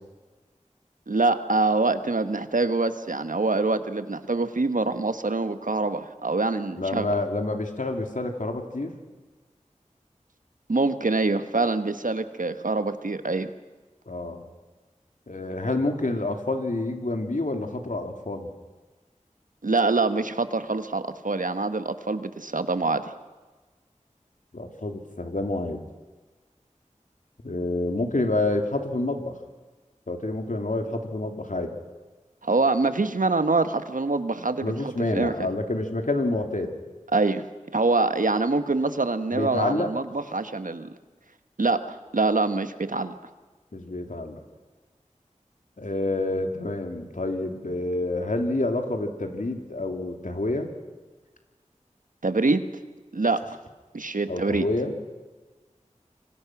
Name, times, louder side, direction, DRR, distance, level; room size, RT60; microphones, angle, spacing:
voice 1, 1.1-7.1 10.7-13.5 19.6-23.0 32.4-35.5 37.1-37.4 37.7-41.0 41.6-43.1 52.2-52.7 53.1-53.4 53.9-54.7, right 3 dB, 90° right, 10 dB, 1.3 m, -25 dB
voice 2, 6.8-8.9 14.1-14.4 15.3-18.5 24.5-25.8 27.4-29.4 30.1-31.8 34.6-36.7 39.3-39.9 43.7-44.4 45.8-50.7 54.3-55.0, left 2 dB, 75° left, 4 dB, 2.8 m, -28 dB
27.0 x 25.0 x 6.1 m, 1.3 s
wide cardioid pair, 45°, 13 cm